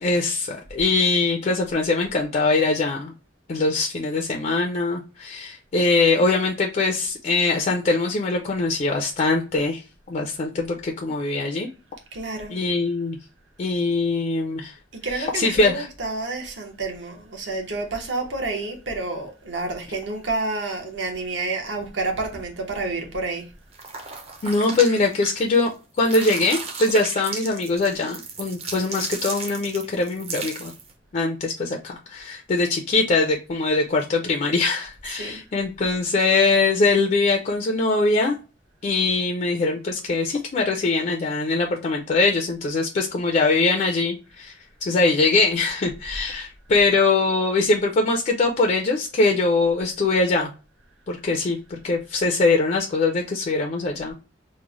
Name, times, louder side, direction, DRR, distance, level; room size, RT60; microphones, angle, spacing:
voice 1, 0.0-3.1 3.5-9.8 10.1-11.7 12.5-13.2 13.6-14.7 15.1-15.9 24.4-25.7 26.0-30.7 31.1-38.4 38.8-44.5 44.8-50.5 51.1-54.1, left 3 dB, 40° left, 0.4 m, -22 dB
voice 2, 12.1-12.6 15.0-23.5 35.0-35.4, right 3 dB, 65° right, 0.8 m, -29 dB
sound 1, 23.7-25.7 26.0-30.9, right 4 dB, 35° right, 0.6 m, -35 dB
3.0 x 2.0 x 3.6 m
head